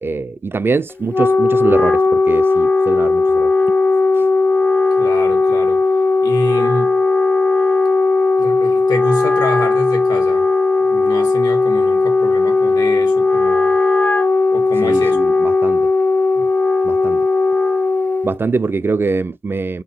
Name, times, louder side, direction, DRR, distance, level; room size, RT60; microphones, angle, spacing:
voice 1, 0.0-3.5 14.8-15.9 16.8-17.2 18.2-19.8, right 4 dB, 35° right, 0.3 m, -22 dB
Wind instrument woodwind instrument, 0.9-18.4, left 3 dB, 25° left, 0.5 m, -16 dB
voice 2, 5.0-5.8 6.2-6.9 8.4-10.5 10.9-13.8 14.5-15.2 16.4-16.5, left 1 dB, 80° left, 1.4 m, -26 dB
3.6 x 2.8 x 4.3 m
cardioid pair, 60°, 7 cm